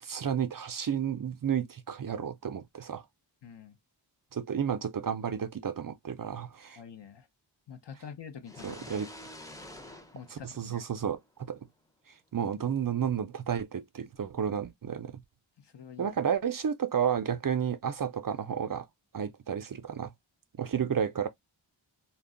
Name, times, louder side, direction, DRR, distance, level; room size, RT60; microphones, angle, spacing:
voice 1, 0.0-3.0 4.3-6.8 8.6-9.1 10.3-11.6 12.3-15.2 16.0-18.9 19.1-20.1 20.6-21.3, right 8 dB, 45° right, 0.4 m, -32 dB
voice 2, 3.4-3.8 6.8-7.3 7.7-9.1 10.1-10.8 15.6-16.1, left 7 dB, 60° left, 0.6 m, -47 dB
sound 1, 8.5-11.3, left 1 dB, 10° left, 0.5 m, -48 dB
2.2 x 2.0 x 3.6 m
wide cardioid pair, 40°, 47 cm